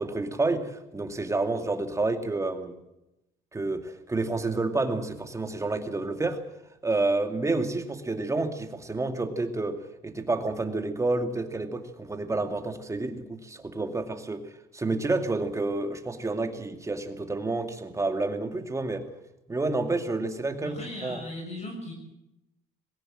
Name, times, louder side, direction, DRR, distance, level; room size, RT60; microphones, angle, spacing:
voice 1, 0.0-2.8 3.5-6.4 6.8-19.1 19.5-21.2, right 2 dB, 20° right, 6 dB, 2.4 m, -29 dB
voice 2, 20.6-21.9, left 1 dB, 40° left, 2 dB, 6.6 m, -38 dB
20.5 x 17.0 x 7.8 m, 0.90 s
cardioid pair, 110°, 17 cm